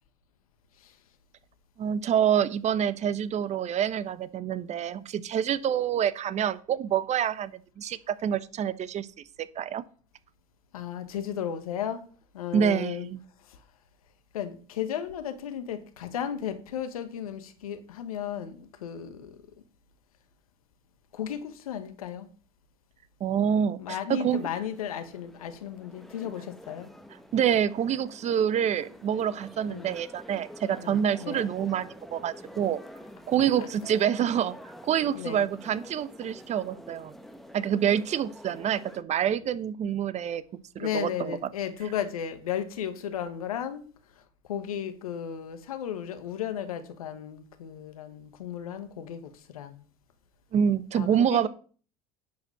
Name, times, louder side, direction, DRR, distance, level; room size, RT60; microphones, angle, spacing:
voice 1, 1.8-9.1 9.6-9.8 12.5-13.2 23.2-24.5 27.3-32.8 33.3-34.6 34.8-37.2 37.5-40.4 40.7-41.4 50.5-51.5, right 9 dB, 40° right, 0.9 m, -27 dB
voice 2, 10.7-12.0 12.3-13.1 14.3-19.4 21.1-22.3 23.8-26.9 29.7-29.9 30.8-31.5 33.6-33.7 35.1-35.5 40.8-43.8 44.5-49.8 50.9-51.5, left 9 dB, 85° left, 1.4 m, -34 dB
sound 1, 24.2-39.0, equal, ahead, 1.3 m, -48 dB
10.5 x 5.0 x 6.6 m
hypercardioid pair, 80°, 18 cm